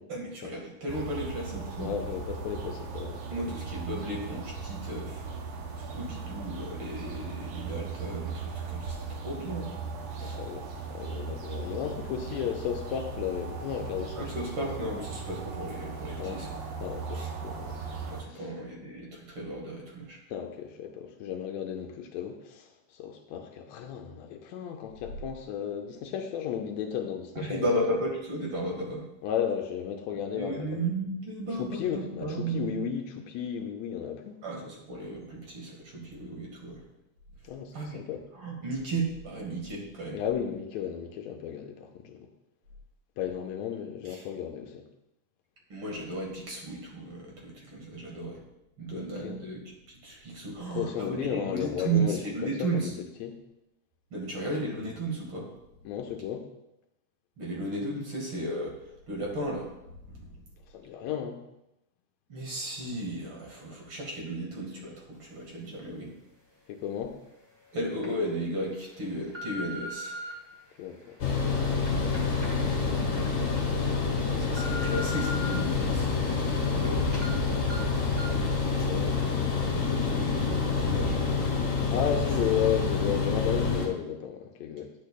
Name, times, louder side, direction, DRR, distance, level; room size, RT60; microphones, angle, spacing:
voice 1, 0.1-1.9 3.3-5.2 5.9-9.7 10.2-10.4 14.2-16.5 17.2-17.3 18.1-20.2 27.4-29.0 30.3-32.8 34.4-36.8 37.7-38.0 38.3-40.2 44.1-44.2 45.7-48.4 48.8-49.6 50.0-52.9 54.1-55.5 57.4-58.8 59.1-60.3 62.3-66.1 67.7-70.2 74.5-77.1 78.9-81.5, right 2 dB, 50° right, -2 dB, 2.3 m, -35 dB
sound 1, 0.9-18.2, right 5 dB, 65° right, 1.5 m, -38 dB
voice 2, 1.8-3.2 10.2-14.3 16.2-16.4 16.8-17.8 18.3-18.5 20.3-27.6 29.2-30.7 31.6-34.4 37.4-38.2 40.1-42.3 43.2-44.9 48.9-49.5 50.6-52.7 53.2-53.4 55.9-56.5 60.7-61.4 66.7-67.2 70.8-71.2 72.8-73.0 73.5-74.2 74.7-74.9 78.5-79.1 79.4-79.7 81.9-84.9, left 8 dB, 80° left, 4 dB, 1.9 m, -34 dB
sound 2, 67.0-67.1 67.8-68.1 68.7-70.3 71.0-73.3 73.7-73.8 74.2-75.5 76.0-76.9 77.1-77.3 77.7-77.8 78.2-78.4 78.8-78.9, left 2 dB, 10° right, 1.3 m, -40 dB
sound 3, 71.2-83.9, left 4 dB, 45° left, 1.9 m, -27 dB
10.5 x 8.1 x 2.2 m, 0.88 s
omnidirectional pair, 3.3 m